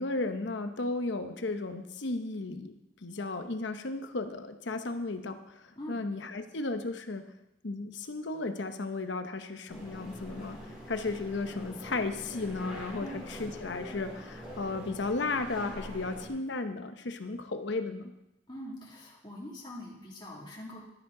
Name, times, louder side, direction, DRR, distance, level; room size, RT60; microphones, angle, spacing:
voice 1, 0.0-2.7 3.0-5.4 5.9-7.2 7.6-10.6 10.9-18.1, left 3 dB, 65° left, 8 dB, 0.9 m, -34 dB
sound 1, 9.7-16.3, equal, 5° right, 3.9 m, -44 dB
voice 2, 18.5-20.8, left 1 dB, 25° left, -4 dB, 2.4 m, -43 dB
12.0 x 10.0 x 3.8 m, 0.90 s
head